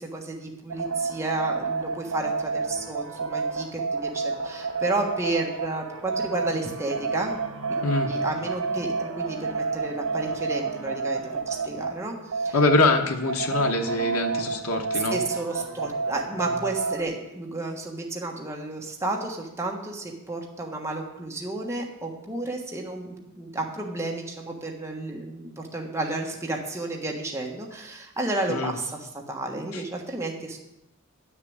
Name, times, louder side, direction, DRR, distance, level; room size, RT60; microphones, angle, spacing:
voice 1, 0.0-7.4 7.6-12.6 14.9-30.6, right 2 dB, 15° right, 0 dB, 1.3 m, -32 dB
sound 1, 0.7-17.0, right 4 dB, 85° right, 1.3 m, -30 dB
voice 2, 12.5-15.2 28.5-28.7 29.7-29.8, left 2 dB, 90° left, 3 dB, 1.2 m, -24 dB
9.4 x 6.8 x 8.7 m, 0.89 s
head